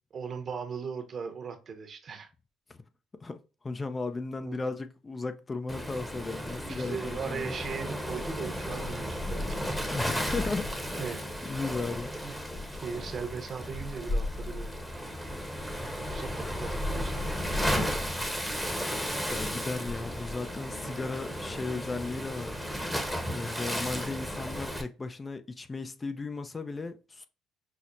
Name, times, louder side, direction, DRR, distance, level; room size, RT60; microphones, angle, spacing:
voice 1, 0.1-2.3 4.4-4.6 6.5-9.7 11.0-11.2 12.2-12.3 12.8-14.9 16.0-18.3 20.8-21.0, right 6 dB, 50° right, 0.8 m, -39 dB
voice 2, 3.2-7.5 9.9-10.7 11.0-12.1 19.3-22.5 23.3-27.3, left 3 dB, 25° left, 0.4 m, -36 dB
Waves surf, 5.7-24.8, equal, 5° left, 0.9 m, -34 dB
5.7 x 2.0 x 2.5 m
supercardioid pair, 70°, 0 cm